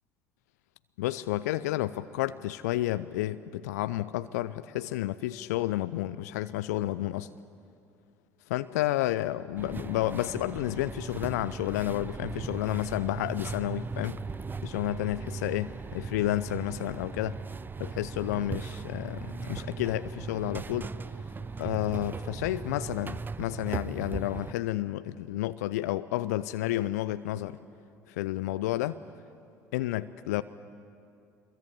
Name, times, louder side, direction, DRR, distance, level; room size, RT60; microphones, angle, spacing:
voice 1, 1.0-7.3 8.5-14.2 14.6-17.4 17.8-20.9 21.6-27.6 28.1-29.0 29.7-30.4, left 15 dB, 70° left, 14 dB, 0.5 m, -31 dB
sound 1, 9.6-24.5, right 4 dB, 20° right, 0.6 m, -38 dB
24.0 x 22.5 x 8.4 m, 2.5 s
figure-of-eight pair, 60°, 9 cm